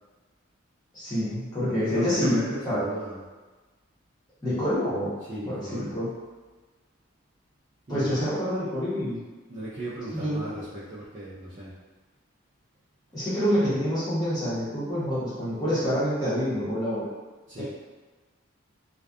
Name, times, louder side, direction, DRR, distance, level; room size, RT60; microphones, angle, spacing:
voice 1, 0.9-2.4 2.6-2.8 4.4-5.1 5.4-6.1 7.9-9.2 10.1-10.5 13.1-17.1 17.6-17.7, equal, 20° left, -11 dB, 0.9 m, -27 dB
voice 2, 1.8-3.2 5.3-5.9 7.9-8.2 9.5-11.7 17.5-17.6, right 1 dB, 35° right, -11 dB, 0.4 m, -36 dB
2.5 x 2.3 x 2.3 m, 1.3 s
head